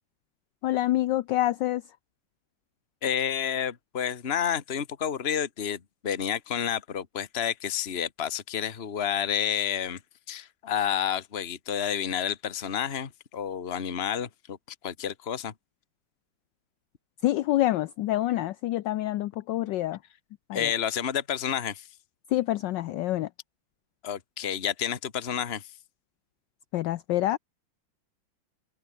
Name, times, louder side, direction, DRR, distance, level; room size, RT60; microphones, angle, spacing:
voice 1, 0.6-1.8 17.2-20.0 20.5-20.7 22.3-23.3 26.7-27.4, left 14 dB, 70° left, 1.2 m, -26 dB
voice 2, 3.0-10.0 10.3-14.6 14.8-15.5 20.5-21.9 24.0-25.7, left 9 dB, 35° left, 1.6 m, -30 dB
open air
omnidirectional pair, 2.2 m